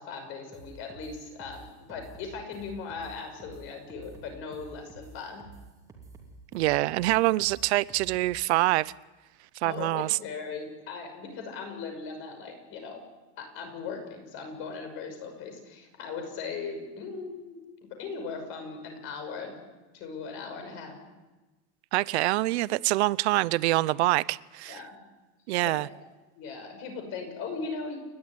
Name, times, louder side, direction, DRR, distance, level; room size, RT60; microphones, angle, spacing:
voice 1, 0.0-5.4 9.6-13.0 13.4-17.6 17.9-19.6 19.9-21.0 24.7-25.0 25.6-25.9 26.4-28.0, left 5 dB, 40° left, 5.8 m, -38 dB
sound 1, 0.5-8.4, right 3 dB, 10° right, 2.9 m, -49 dB
voice 2, 6.5-8.9 9.6-10.2 21.9-24.8 25.5-25.9, right 19 dB, 80° right, 0.7 m, -25 dB
29.5 x 12.0 x 9.8 m
supercardioid pair, 175°, 33 cm